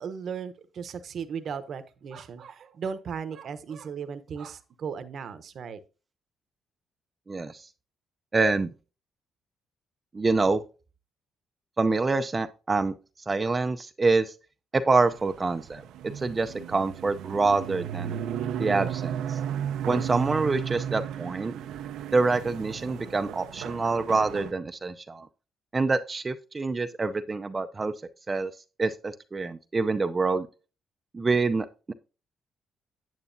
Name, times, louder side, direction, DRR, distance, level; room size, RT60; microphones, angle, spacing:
voice 1, 0.0-5.8, right 6 dB, 60° right, 11 dB, 0.9 m, -36 dB
voice 2, 7.3-7.6 8.3-8.7 10.1-10.6 11.8-12.9 13.3-14.3 14.7-15.8 16.2-18.1 18.6-19.4 19.9-21.5 22.1-25.3 25.7-27.9 28.3-28.5 28.8-30.5 31.1-31.9, right 3 dB, 30° right, 8 dB, 0.5 m, -26 dB
sound 1, 15.0-24.5, right 9 dB, 85° right, 0.6 m, -34 dB
9.2 x 8.1 x 2.7 m, 0.33 s
cardioid pair, 90°, 0 cm